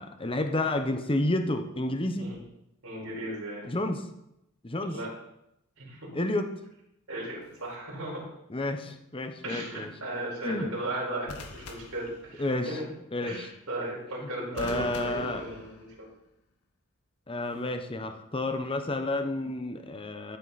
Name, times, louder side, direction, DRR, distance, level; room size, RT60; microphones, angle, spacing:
voice 1, 0.0-2.3 3.6-4.0 4.6-5.0 6.1-6.5 8.5-9.9 10.4-10.7 12.4-12.8 13.1-13.5 14.5-15.4 17.3-20.4, left 2 dB, 25° left, 6 dB, 0.9 m, -30 dB
voice 2, 2.8-3.7 4.9-5.1 5.8-6.1 7.1-8.3 9.4-12.9 13.2-16.1, right 1 dB, 75° right, -4 dB, 4.9 m, -36 dB
sound 1, 7.4-7.7 11.3-12.7 14.6-16.2 17.4-17.7, left 2 dB, 85° left, 1.6 m, -44 dB
14.5 x 8.0 x 4.1 m, 0.84 s
head